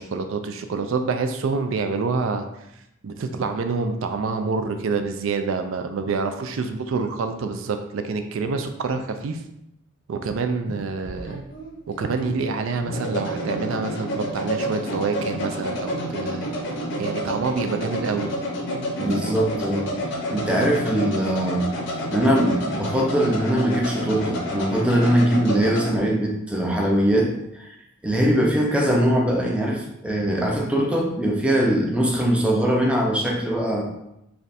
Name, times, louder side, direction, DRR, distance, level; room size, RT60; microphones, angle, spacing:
voice 1, 0.0-2.5 3.0-9.4 10.1-11.4 11.9-16.5 17.0-18.3, right 4 dB, 65° right, 7 dB, 0.3 m, -27 dB
sound 1, 10.7-26.0, equal, 55° left, 0.7 m, -29 dB
voice 2, 19.0-19.9 20.3-21.7 22.1-27.7 28.0-33.9, right 1 dB, 5° right, -1 dB, 0.5 m, -21 dB
3.3 x 2.4 x 4.0 m, 0.83 s
head